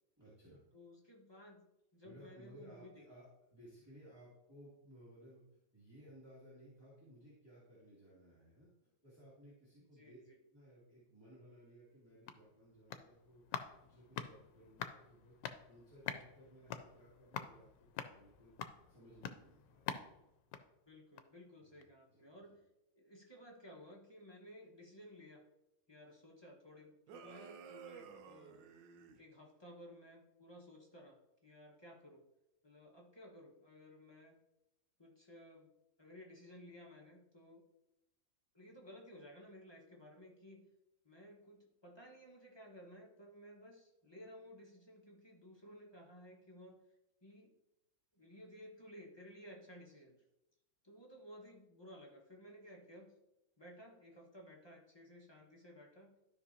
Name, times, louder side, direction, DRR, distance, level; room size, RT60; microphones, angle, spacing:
voice 1, 0.2-0.6 2.0-5.4 5.7-10.2 10.5-19.8 21.6-22.6, equal, 15° right, -8 dB, 2.3 m, -60 dB
voice 2, 0.7-1.6 1.9-3.0 10.0-10.4 20.8-22.6 22.9-25.4 25.9-28.6 29.2-32.3 32.6-34.4 35.0-37.6 38.5-40.7 41.0-46.8 47.2-47.5 48.1-50.2 50.8-53.1 53.6-56.1, equal, 15° left, -2 dB, 1.1 m, -56 dB
sound 1, 11.9-21.5 21.8-21.9, left 8 dB, 80° left, 1.3 m, -47 dB
sound 2, 27.1-29.2, right 7 dB, 80° right, 1.4 m, -53 dB
12.5 x 5.5 x 2.8 m, 0.90 s
omnidirectional pair, 2.0 m